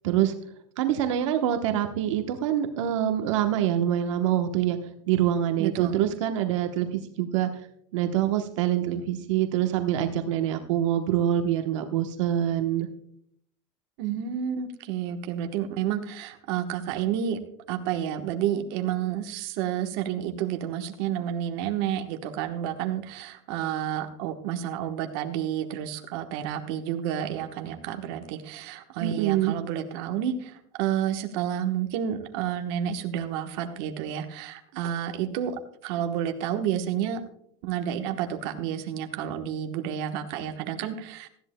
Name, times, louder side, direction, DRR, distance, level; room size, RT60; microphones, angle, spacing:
voice 1, 0.8-4.8 5.1-7.5 7.9-12.9 29.0-29.5, right 11 dB, 80° right, 6 dB, 1.0 m, -25 dB
voice 2, 5.6-6.0 14.0-17.4 17.7-37.2 37.6-41.3, right 10 dB, 55° right, 5 dB, 1.1 m, -30 dB
18.5 x 13.5 x 2.2 m, 0.67 s
supercardioid pair, 165°, 16 cm